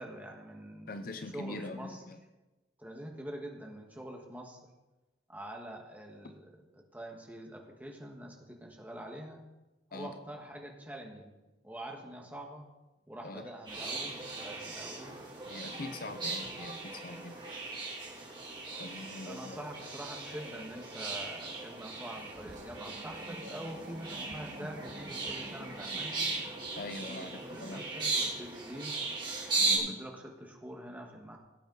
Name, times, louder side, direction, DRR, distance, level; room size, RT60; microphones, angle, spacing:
voice 1, 0.0-1.0 1.3-2.0 2.8-4.7 5.3-9.4 9.9-11.3 11.6-12.7 13.1-15.2 19.2-26.3 27.0-28.9 29.7-31.4, right 1 dB, 10° right, 1 dB, 1.6 m, -45 dB
voice 2, 0.9-2.2 9.9-10.1 13.2-13.5 15.5-17.4 18.8-19.6 26.8-27.8 29.6-30.0, left 2 dB, 50° left, 8 dB, 0.7 m, -43 dB
sound 1, 13.7-29.8, right 3 dB, 25° right, 2.9 m, -37 dB
sound 2, 22.0-26.9, right 1 dB, 40° right, 1.4 m, -50 dB
17.5 x 8.6 x 4.0 m, 1.1 s
head